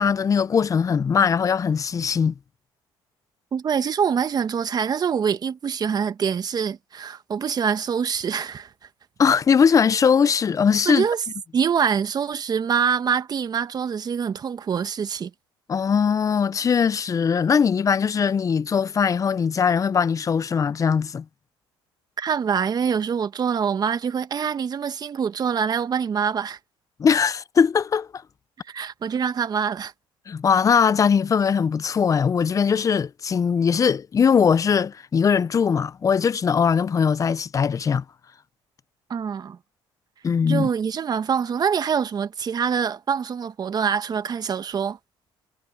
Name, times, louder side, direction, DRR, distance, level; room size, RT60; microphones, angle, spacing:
voice 1, 0.0-2.3 9.2-11.1 15.7-21.2 27.0-28.1 30.3-38.0 40.2-40.7, left 6 dB, 35° left, 0.6 m, -20 dB
voice 2, 3.5-8.7 10.8-11.2 11.5-15.3 22.2-26.6 28.7-29.9 39.1-39.6 40.5-45.0, right 7 dB, 40° right, 1.4 m, -25 dB
supercardioid pair, 90°, 10 cm